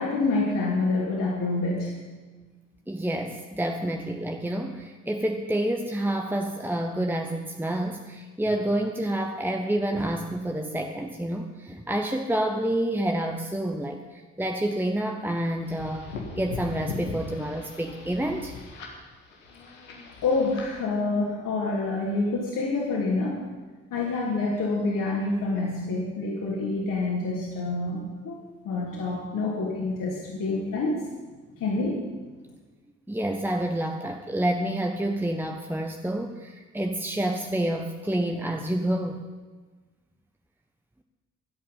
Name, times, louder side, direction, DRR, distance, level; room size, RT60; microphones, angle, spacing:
voice 1, 0.0-1.9 20.2-23.5 23.9-28.4 28.6-31.0 31.6-32.0, left 3 dB, 60° left, -5 dB, 3.2 m, -27 dB
voice 2, 2.9-18.5 33.1-39.2, right 1 dB, 5° right, 4 dB, 1.2 m, -28 dB
sound 1, 15.6-20.7, left 3 dB, 85° left, 2.0 m, -39 dB
24.5 x 8.5 x 5.7 m, 1.3 s
figure-of-eight pair, 45°, 37 cm